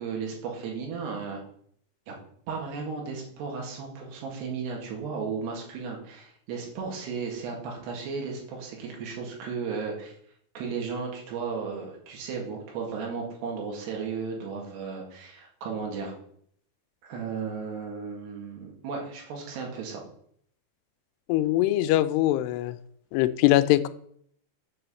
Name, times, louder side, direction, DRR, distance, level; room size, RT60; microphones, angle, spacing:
voice 1, 0.0-1.4 2.1-2.2 2.5-10.1 10.6-16.1 17.0-20.0, right 5 dB, 80° right, 0 dB, 4.0 m, -35 dB
voice 2, 21.3-22.8 23.1-23.9, left 15 dB, 85° left, 13 dB, 2.7 m, -22 dB
7.6 x 5.8 x 6.9 m, 0.65 s
omnidirectional pair, 4.7 m